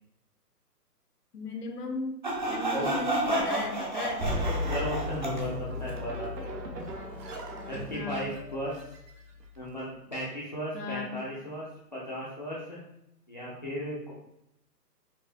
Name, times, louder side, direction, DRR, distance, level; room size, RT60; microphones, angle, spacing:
voice 1, 1.3-2.2 2.5-4.3 7.9-8.3 10.7-11.2, left 3 dB, 70° left, 2 dB, 1.0 m, -36 dB
Sawing, 2.2-5.4, right 1 dB, 30° right, 0.6 m, -30 dB
sound 1, 4.2-9.7, left 1 dB, 75° right, 1.1 m, -36 dB
voice 2, 4.7-6.5 7.7-8.9 9.6-12.8 13.3-14.1, equal, 30° left, -7 dB, 0.5 m, -36 dB
5.4 x 2.4 x 3.7 m, 0.82 s
hypercardioid pair, 175°, 49 cm